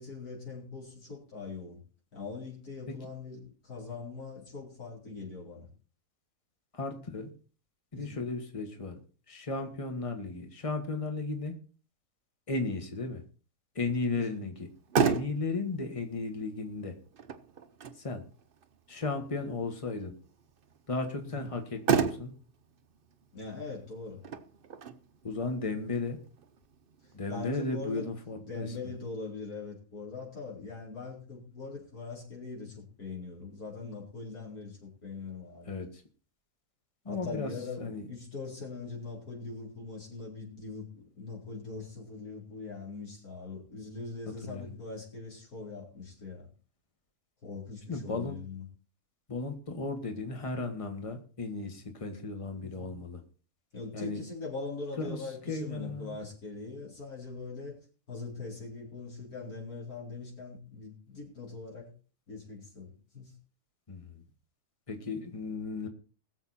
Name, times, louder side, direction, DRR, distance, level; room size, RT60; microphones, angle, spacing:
voice 1, 0.0-1.8 2.1-5.7 7.9-8.2 14.1-14.2 21.2-21.5 23.3-24.2 27.0-28.1 28.4-35.8 37.1-46.5 47.4-48.7 52.6-52.9 53.7-57.8 58.1-61.9 62.3-63.3, left 4 dB, 70° left, -4 dB, 4.8 m, -42 dB
voice 2, 6.7-7.3 7.9-9.0 9.3-11.5 12.5-13.2 13.7-14.7 15.0-16.9 18.0-18.2 18.9-20.1 20.9-22.3 25.2-26.2 27.1-28.7 35.7-36.0 37.0-37.5 37.8-38.0 44.4-44.8 47.9-48.3 49.3-53.2 53.9-54.2 55.0-55.2 55.5-56.2 63.9-64.2 64.9-65.9, left 3 dB, 20° left, 5 dB, 1.7 m, -35 dB
Motor vehicle (road), 14.6-27.5, right 6 dB, 45° right, 0.8 m, -35 dB
21.0 x 7.2 x 4.3 m, 0.38 s
omnidirectional pair, 1.6 m